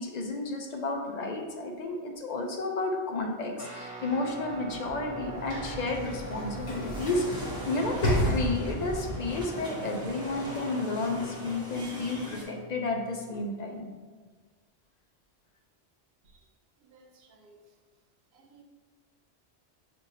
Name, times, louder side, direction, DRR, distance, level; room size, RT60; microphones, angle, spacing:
voice 1, 0.0-14.0, left 2 dB, 55° left, 2 dB, 0.5 m, -32 dB
Guitar, 3.6-13.4, right 5 dB, 40° right, 1.0 m, -45 dB
Sliding door / Slam, 4.4-9.1, equal, 75° left, 1.2 m, -33 dB
sound 1, 6.9-12.4, equal, 5° right, 0.8 m, -39 dB
voice 2, 16.8-17.6 18.3-18.6, right 4 dB, 75° right, 2 dB, 0.9 m, -58 dB
6.1 x 2.6 x 2.7 m, 1.4 s
omnidirectional pair, 1.1 m